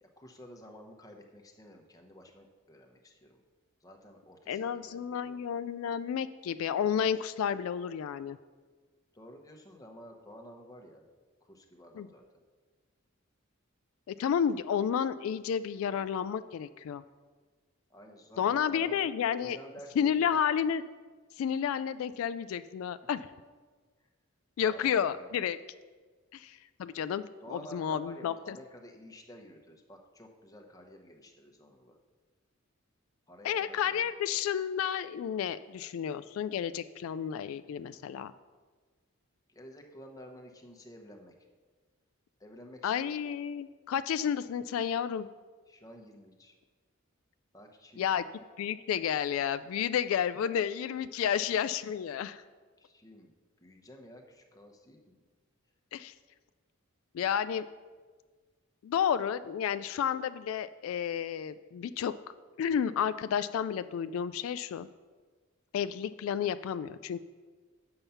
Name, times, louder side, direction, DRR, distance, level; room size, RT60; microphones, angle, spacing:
voice 1, 0.0-3.4 3.8-5.5 9.1-11.0 11.4-12.4 17.9-19.1 19.4-20.4 24.0-24.1 24.6-25.4 27.4-32.0 33.3-34.1 39.5-41.4 42.4-43.1 45.7-46.5 47.5-48.2 52.8-53.3 53.6-55.2, equal, 15° left, 2 dB, 0.9 m, -51 dB
voice 2, 4.5-8.4 12.0-12.1 14.1-17.0 18.4-19.6 20.0-20.8 21.4-23.3 24.6-25.6 26.3-27.2 27.5-28.5 33.4-38.3 42.8-45.3 48.0-48.2 48.6-52.4 55.9-56.1 57.1-57.7 58.8-62.1 62.6-64.9 65.7-67.2, left 8 dB, 85° left, 14 dB, 0.3 m, -31 dB
7.2 x 6.7 x 5.6 m, 1.4 s
head